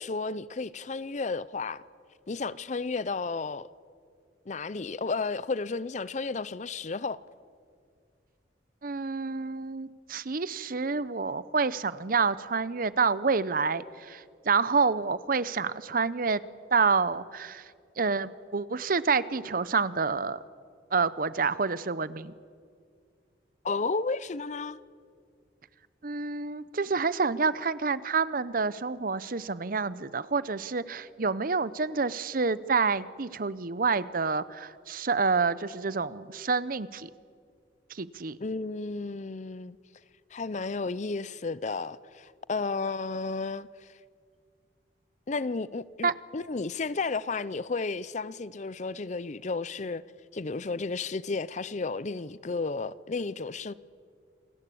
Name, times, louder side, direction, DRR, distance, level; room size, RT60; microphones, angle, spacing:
voice 1, 0.0-1.8 2.3-3.7 4.5-7.2 23.6-24.8 38.4-39.8 40.3-43.9 45.3-50.0 50.3-53.7, left 4 dB, 40° left, 0.5 m, -33 dB
voice 2, 8.8-16.4 16.7-17.7 18.0-20.4 20.9-22.3 26.0-37.1 37.9-38.4 46.0-46.1, right 4 dB, 50° right, 0.7 m, -28 dB
27.5 x 19.0 x 8.5 m
head